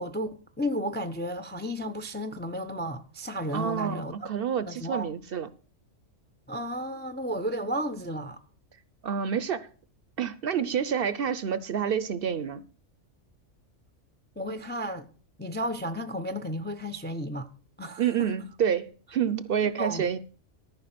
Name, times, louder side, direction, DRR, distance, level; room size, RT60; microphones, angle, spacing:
voice 1, 0.0-4.3 4.6-5.1 6.5-8.4 14.4-15.1 15.4-17.5 17.8-18.3 19.6-20.0, equal, 15° left, 0.4 m, -33 dB
voice 2, 3.5-5.5 9.0-9.7 10.2-12.6 18.0-20.2, right 8 dB, 60° right, 0.7 m, -28 dB
13.5 x 5.6 x 5.9 m
omnidirectional pair, 1.2 m